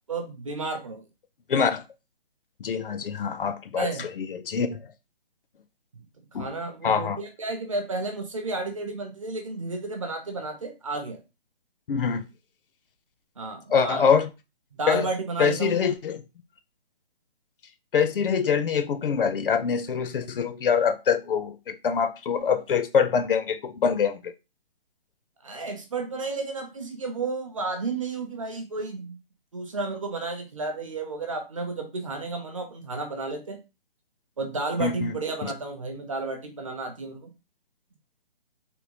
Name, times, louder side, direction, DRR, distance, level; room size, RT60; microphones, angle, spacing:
voice 1, 0.1-1.0 3.7-4.1 6.4-11.2 13.4-14.0 14.7-15.7 25.4-29.2 29.5-33.6 34.4-37.3, right 3 dB, 35° right, 0.5 m, -32 dB
voice 2, 1.5-1.8 2.6-4.8 6.3-6.5 6.8-7.2 11.9-12.3 13.7-14.3 14.9-15.1 15.4-16.2 17.9-24.3 34.8-35.1 35.4-35.5, left 6 dB, 60° left, 0.5 m, -24 dB
3.5 x 2.2 x 2.9 m
hypercardioid pair, 170°, 31 cm